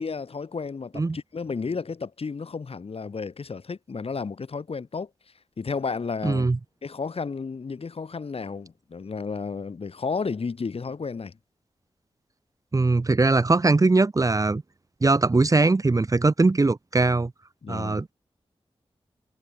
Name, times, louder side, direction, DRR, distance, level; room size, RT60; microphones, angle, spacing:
voice 1, 0.0-5.1 5.6-6.5 6.8-11.4 17.6-18.0, left 5 dB, 65° left, 3.8 m, -32 dB
voice 2, 6.2-6.6 12.7-14.6 15.0-17.3 17.7-18.1, right 3 dB, 30° right, 0.8 m, -21 dB
wide cardioid pair, 75°, 11 cm